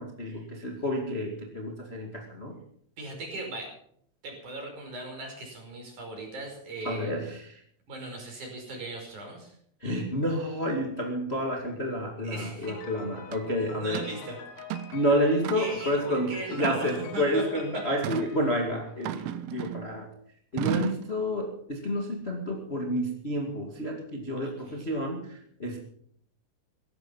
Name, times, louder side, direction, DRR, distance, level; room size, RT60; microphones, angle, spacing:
voice 1, 0.0-2.5 6.8-7.6 9.8-14.0 14.9-20.1 20.5-25.8, equal, 45° left, 1 dB, 0.8 m, -30 dB
voice 2, 3.0-3.7 4.2-7.1 7.9-9.6 12.2-12.8 13.6-14.4 15.5-17.4 24.4-24.9, right 2 dB, 40° right, 2 dB, 6.2 m, -39 dB
Piano, 12.6-19.5, left 6 dB, 80° left, 4.5 m, -46 dB
sound 1, 13.3-13.4 13.9-14.2 14.6-15.0 15.4-15.9 16.6-17.2 18.0-18.3 19.0-19.9 20.6-21.1, right 10 dB, 85° right, 3.4 m, -34 dB
17.0 x 13.5 x 5.7 m, 0.66 s
omnidirectional pair, 5.4 m